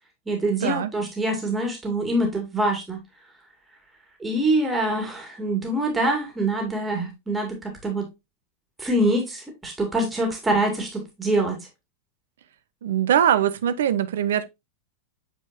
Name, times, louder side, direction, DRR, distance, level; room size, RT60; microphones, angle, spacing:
voice 1, 0.3-3.0 4.2-7.6 7.8-8.1 8.8-11.6, right 1 dB, 10° right, 2.2 m, -24 dB
voice 2, 12.8-14.5, right 10 dB, 60° right, 0.7 m, -22 dB
8.3 x 4.4 x 2.7 m
figure-of-eight pair, 90°, 0 cm